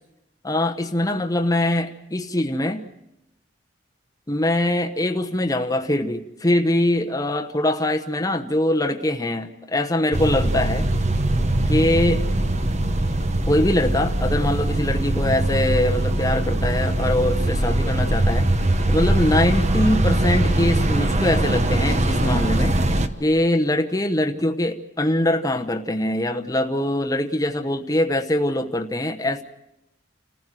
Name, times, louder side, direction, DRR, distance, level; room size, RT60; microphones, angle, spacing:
voice 1, 0.4-2.8 4.3-10.9 11.7-12.2 13.5-18.5 18.9-22.8 23.2-29.4, left 1 dB, 20° left, 4 dB, 1.0 m, -22 dB
sound 1, 10.1-23.1, right 1 dB, 35° right, 1.2 m, -21 dB
29.0 x 15.0 x 7.7 m, 0.88 s
head